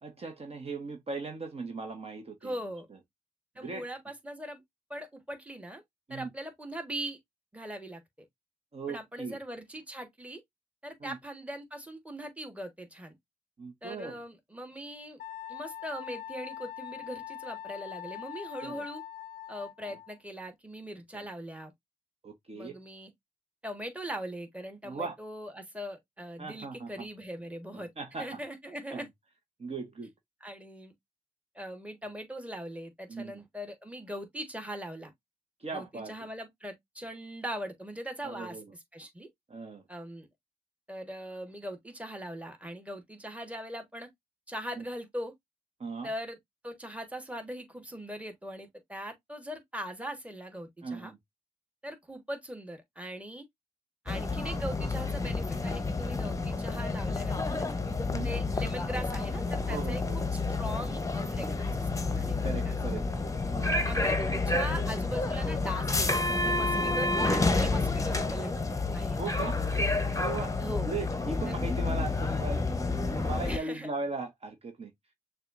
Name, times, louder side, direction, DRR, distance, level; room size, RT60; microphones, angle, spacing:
voice 1, 0.0-2.5 3.6-3.9 6.1-6.3 8.7-9.4 11.0-11.2 13.6-14.2 18.6-18.8 21.1-21.2 22.2-22.8 24.8-25.1 26.4-27.1 27.7-28.4 28.9-29.1 29.6-30.1 33.1-33.4 35.6-36.1 38.2-38.6 39.5-39.8 44.7-44.8 45.8-46.1 50.8-51.2 58.1-58.3 59.7-60.3 62.4-63.1 63.5-63.9 69.2-69.6 70.1-70.5 70.8-72.6 73.0-74.9, right 3 dB, 45° right, 1.1 m, -38 dB
voice 2, 2.4-2.9 3.5-4.6 4.9-5.8 6.1-7.2 7.5-8.0 8.9-10.4 10.8-13.2 13.8-15.2 15.5-19.0 19.5-21.7 22.5-23.1 23.6-27.9 28.2-29.1 30.4-30.9 31.5-35.1 35.7-38.6 38.9-39.3 39.9-40.3 40.9-44.1 44.5-45.3 46.0-46.4 46.6-51.1 51.8-53.4 54.0-57.7 58.2-62.8 63.8-68.6 68.9-69.2 70.6-70.9 71.5-71.8 73.4-73.9, equal, 10° right, 1.4 m, -40 dB
Wind instrument woodwind instrument, 15.2-20.2, left 11 dB, 75° left, 0.4 m, -42 dB
sound 1, 54.1-73.6, left 3 dB, 20° left, 0.8 m, -30 dB
6.5 x 2.4 x 2.5 m
supercardioid pair, 45°, 15 cm